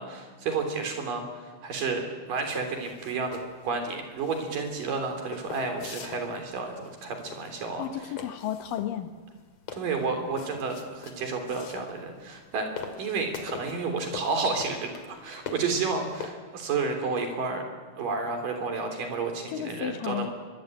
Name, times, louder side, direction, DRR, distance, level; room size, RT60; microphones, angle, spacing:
voice 1, 0.0-7.8 9.7-12.7 13.0-17.6 18.0-20.3, right 4 dB, 75° right, 5 dB, 5.0 m, -31 dB
sound 1, 2.5-16.3, left 6 dB, 55° left, 3.3 m, -43 dB
voice 2, 7.8-9.1 19.5-20.3, left 10 dB, 80° left, 8 dB, 3.1 m, -32 dB
23.5 x 22.5 x 9.0 m, 1.5 s
omnidirectional pair, 3.9 m